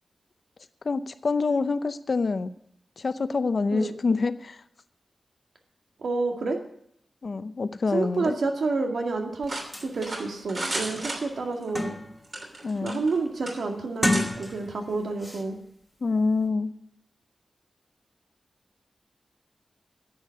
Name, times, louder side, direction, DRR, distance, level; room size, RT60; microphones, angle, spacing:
voice 1, 0.8-2.5 3.0-4.6 7.2-8.4 12.6-13.0 16.0-16.7, left 4 dB, 50° left, 12 dB, 0.7 m, -26 dB
voice 2, 6.0-6.6 7.9-9.5 9.8-11.9 12.8-15.6, right 3 dB, 85° right, 3 dB, 2.0 m, -29 dB
sound 1, 9.4-9.5 9.7-9.9 10.4-10.5 11.0-12.3 12.7-13.0 13.9-14.9 15.2-15.4, left 1 dB, 5° left, 1.3 m, -30 dB
sound 2, 9.5-11.7 12.2-13.2 13.5-13.6 14.1-14.3, right 2 dB, 45° right, 3.0 m, -33 dB
10.5 x 8.1 x 9.4 m, 0.72 s
wide cardioid pair, 140°, 0 cm